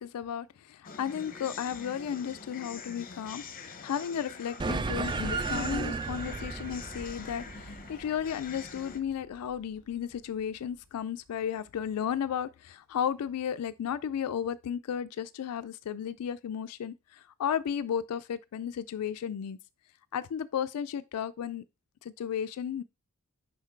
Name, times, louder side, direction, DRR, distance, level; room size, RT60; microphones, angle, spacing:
voice 1, 0.0-19.6 20.1-21.6 22.0-22.8, left 8 dB, 85° left, 0.4 m, -34 dB
sound 1, 0.8-9.0, left 5 dB, 40° left, 0.8 m, -45 dB
sound 2, 4.6-9.4, right 4 dB, 20° right, 0.3 m, -34 dB
5.8 x 5.1 x 4.5 m
head